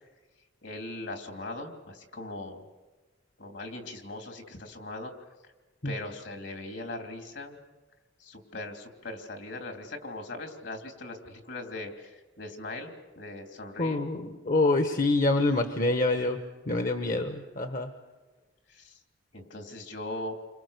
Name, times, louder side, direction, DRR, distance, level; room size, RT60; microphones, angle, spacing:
voice 1, 0.6-2.6 3.4-5.1 5.4-5.5 5.8-7.6 8.2-14.0 18.7-19.0 19.3-20.4, left 2 dB, 70° left, 4 dB, 3.4 m, -40 dB
voice 2, 13.8-16.4 16.7-17.9, left 2 dB, 45° left, 6 dB, 1.2 m, -26 dB
29.5 x 25.5 x 6.8 m, 1.3 s
head